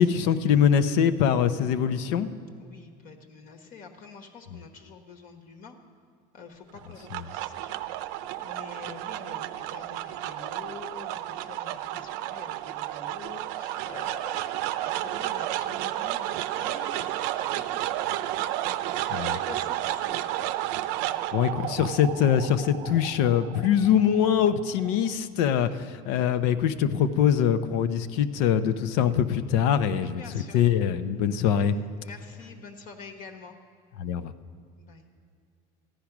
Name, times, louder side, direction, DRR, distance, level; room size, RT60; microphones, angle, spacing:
voice 1, 0.0-2.3 19.1-19.4 21.3-25.7 26.1-31.8 34.0-34.3, left 8 dB, 85° left, 11 dB, 0.7 m, -23 dB
voice 2, 2.6-5.7 6.3-14.5 14.8-18.5 18.9-20.5 21.1-21.2 25.5-26.3 29.9-30.6 32.0-33.6 34.8-35.1, left 5 dB, 50° left, 4 dB, 1.3 m, -47 dB
sound 1, 6.8-25.1, right 13 dB, 75° right, 0.6 m, -32 dB
14.5 x 10.0 x 6.0 m, 2.3 s
cardioid pair, 135°, 18 cm